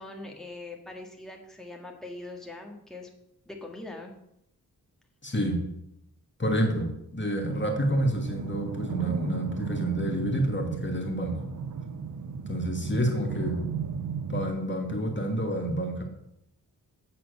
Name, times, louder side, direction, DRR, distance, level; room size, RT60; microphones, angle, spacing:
voice 1, 0.0-3.1 3.5-4.2, left 2 dB, ahead, 0 dB, 1.7 m, -42 dB
voice 2, 5.2-5.7 6.4-11.4 12.5-13.8 14.3-16.0, right 1 dB, 30° left, 2 dB, 1.6 m, -28 dB
sound 1, 7.5-14.5, right 6 dB, 50° right, 0.8 m, -35 dB
7.9 x 4.3 x 6.5 m, 0.80 s
cardioid pair, 45°, 39 cm